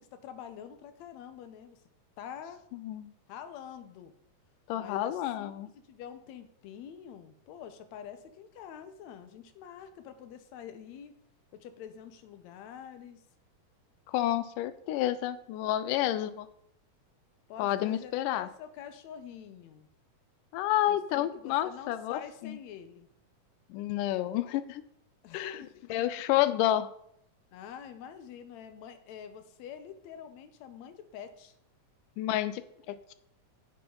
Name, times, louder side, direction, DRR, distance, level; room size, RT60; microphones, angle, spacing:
voice 1, 0.0-1.8 2.2-2.6 3.3-4.1 4.7-11.2 11.5-13.2 17.5-19.9 20.9-23.1 25.2-25.9 27.5-31.5, left 8 dB, 70° left, 10 dB, 1.9 m, -46 dB
voice 2, 4.7-5.7 14.1-16.5 17.6-18.5 20.5-22.6 23.7-24.8 25.3-26.9 32.2-33.1, left 13 dB, 85° left, 14 dB, 2.2 m, -30 dB
10.5 x 6.9 x 3.8 m, 0.72 s
omnidirectional pair, 3.7 m